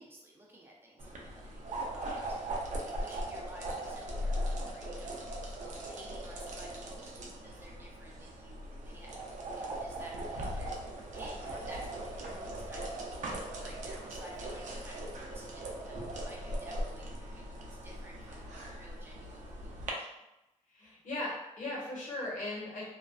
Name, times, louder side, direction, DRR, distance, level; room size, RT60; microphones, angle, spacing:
voice 1, 0.0-20.1, right 1 dB, 20° right, -3 dB, 0.4 m, -53 dB
sound 1, 1.0-19.9, right 1 dB, 85° right, 0.5 m, -39 dB
voice 2, 20.7-22.8, left 2 dB, 85° left, -5 dB, 1.0 m, -38 dB
2.4 x 2.4 x 2.3 m, 0.91 s
wide cardioid pair, 180°, 12 cm